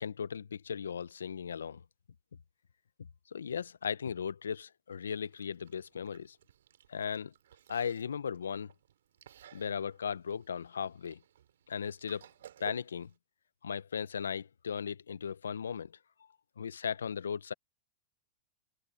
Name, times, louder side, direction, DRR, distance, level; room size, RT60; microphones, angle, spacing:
voice 1, 0.0-1.8 3.3-6.4 6.9-7.3 7.7-8.7 9.5-11.2 11.7-12.3 12.6-13.1 13.6-15.9 16.6-17.5, left 7 dB, 85° left, 1.0 m, -37 dB
Chewing mastication, 5.2-13.2, right 10 dB, 75° right, 4.1 m, -57 dB
open air
hypercardioid pair, 100°, 0 cm